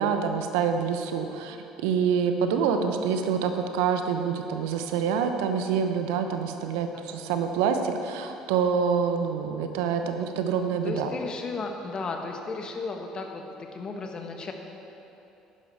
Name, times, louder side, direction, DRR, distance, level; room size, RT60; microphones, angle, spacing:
voice 1, 0.0-1.6 1.8-11.1, right 6 dB, 75° right, 6 dB, 0.8 m, -26 dB
voice 2, 2.2-2.7 3.0-3.1 6.9-7.4 10.8-14.5, left 3 dB, 40° left, 3 dB, 1.5 m, -35 dB
11.0 x 10.0 x 4.7 m, 2.8 s
hypercardioid pair, 60°, 2 cm